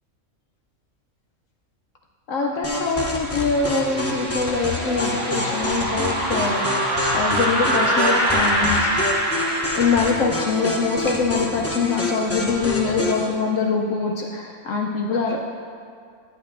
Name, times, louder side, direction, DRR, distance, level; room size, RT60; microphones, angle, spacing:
voice 1, 2.3-6.6 7.1-8.9 9.7-15.4, left 4 dB, 70° left, 1 dB, 0.9 m, -23 dB
sound 1, 2.4-10.1, equal, 80° right, 2.4 m, -24 dB
sound 2, 2.6-13.3, left 1 dB, 15° left, 0.5 m, -28 dB
10.5 x 8.9 x 2.5 m, 2.2 s
omnidirectional pair, 1.5 m